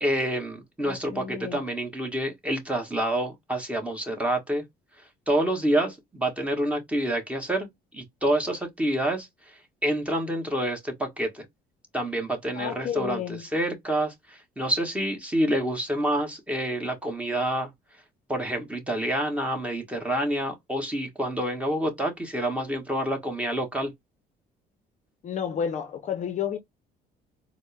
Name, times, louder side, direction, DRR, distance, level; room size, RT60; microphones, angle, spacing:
voice 1, 0.0-4.6 5.3-7.7 7.9-9.3 9.8-11.4 11.9-17.7 18.3-23.9, right 1 dB, 5° right, 1.3 m, -27 dB
voice 2, 0.8-1.6 12.6-13.4 25.2-26.6, left 8 dB, 45° left, 0.5 m, -31 dB
4.1 x 2.0 x 3.3 m
cardioid pair, 110°, 17 cm